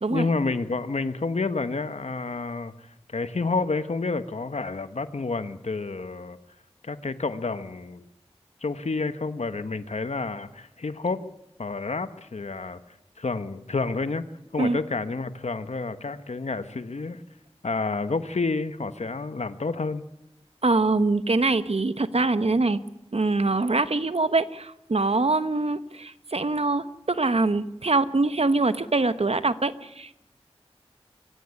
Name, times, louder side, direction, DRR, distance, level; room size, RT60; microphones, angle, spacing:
voice 1, 0.1-6.4 6.8-8.1 8.6-11.2 11.6-12.8 13.2-14.2 14.5-17.2 17.6-20.0, left 3 dB, 90° left, 11 dB, 1.2 m, -29 dB
voice 2, 20.6-22.8 23.1-30.1, right 3 dB, 65° right, 12 dB, 1.2 m, -24 dB
24.0 x 16.5 x 9.6 m, 0.86 s
wide cardioid pair, 40°, 11 cm